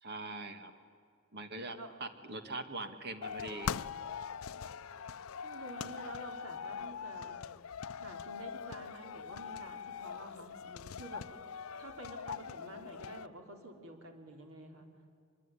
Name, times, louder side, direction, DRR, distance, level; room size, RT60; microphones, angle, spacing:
voice 1, 0.0-0.7 1.3-3.7, right 2 dB, 50° right, 8 dB, 1.9 m, -42 dB
sound 1, 3.2-13.3, left 7 dB, 80° left, 0.6 m, -42 dB
voice 2, 5.4-7.4 8.0-11.2 11.8-14.9, right 1 dB, 85° right, 4 dB, 3.6 m, -49 dB
24.5 x 22.0 x 9.9 m, 2.3 s
head